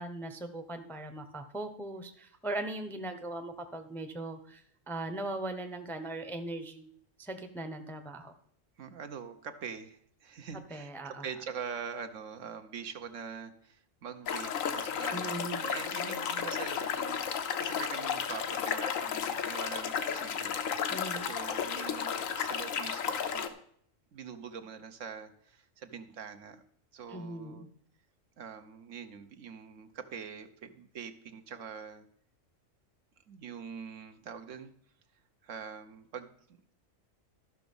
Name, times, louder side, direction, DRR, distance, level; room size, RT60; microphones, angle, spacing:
voice 1, 0.0-6.9 7.2-8.3 10.7-11.2 15.1-15.6 20.9-21.3 27.1-27.7, right 2 dB, ahead, 7 dB, 0.6 m, -39 dB
voice 2, 8.8-17.2 17.6-20.6 21.2-23.5 24.1-26.6 26.9-27.7 28.4-32.1 33.3-34.7 35.4-36.7, right 6 dB, 75° right, 8 dB, 1.2 m, -44 dB
sound 1, 14.3-23.5, left 7 dB, 90° left, 1.2 m, -33 dB
13.0 x 6.0 x 5.4 m, 0.64 s
omnidirectional pair, 1.3 m